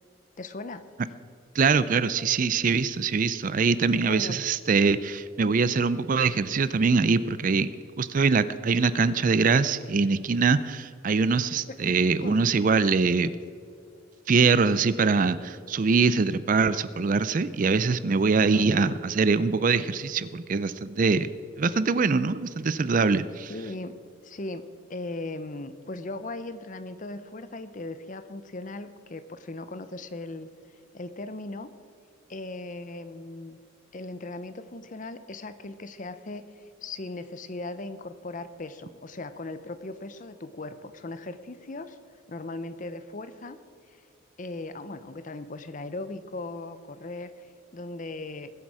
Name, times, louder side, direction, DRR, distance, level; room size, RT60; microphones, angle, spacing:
voice 1, 0.4-0.8 4.0-4.4 11.7-12.0 12.2-12.5 18.5-19.0 23.5-24.0 24.2-24.6 24.9-30.5 30.9-31.7 32.3-33.6 33.9-42.0 42.3-43.6 43.9-44.0 44.4-48.5, left 2 dB, 40° left, 12 dB, 0.7 m, -38 dB
voice 2, 1.5-7.7 8.0-13.3 14.3-21.3 21.6-23.5, right 4 dB, 40° right, 15 dB, 0.4 m, -23 dB
21.0 x 8.4 x 4.8 m, 2.4 s
head